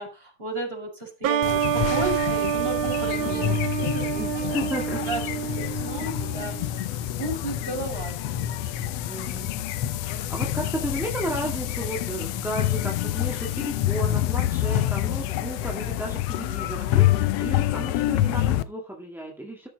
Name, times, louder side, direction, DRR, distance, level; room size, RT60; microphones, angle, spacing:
voice 1, 0.0-3.5 3.8-4.5 5.1-8.4 8.8-8.9, right 2 dB, 15° right, 0 dB, 5.1 m, -34 dB
sound 1, 1.2-6.7, right 10 dB, 80° right, 2.4 m, -28 dB
sound 2, 1.4-18.6, left 13 dB, 75° left, 1.5 m, -27 dB
voice 2, 3.2-3.6 4.2-5.0 9.1-9.6 10.0-19.7, right 1 dB, ahead, -1 dB, 0.9 m, -34 dB
13.5 x 6.9 x 4.1 m, 0.30 s
omnidirectional pair, 3.5 m